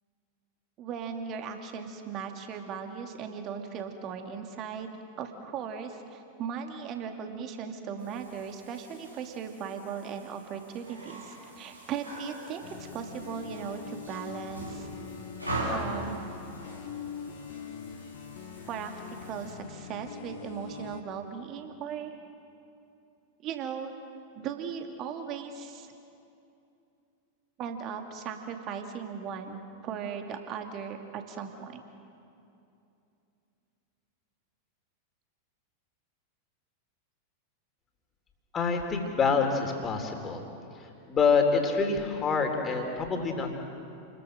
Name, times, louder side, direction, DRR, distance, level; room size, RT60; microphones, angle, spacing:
voice 1, 0.8-4.9 5.2-14.9 15.7-16.3 18.7-22.1 23.4-23.9 24.3-25.9 27.6-31.8, right 7 dB, 35° right, 5 dB, 2.6 m, -38 dB
sound 1, 8.0-19.5, right 1 dB, 85° right, 6.5 m, -42 dB
sound 2, 12.6-21.0, left 7 dB, 50° left, 2.0 m, -43 dB
voice 2, 38.5-40.4 41.1-43.6, left 5 dB, 25° left, 3 dB, 3.7 m, -26 dB
29.5 x 21.5 x 6.7 m, 2.7 s
figure-of-eight pair, 90°, 0 cm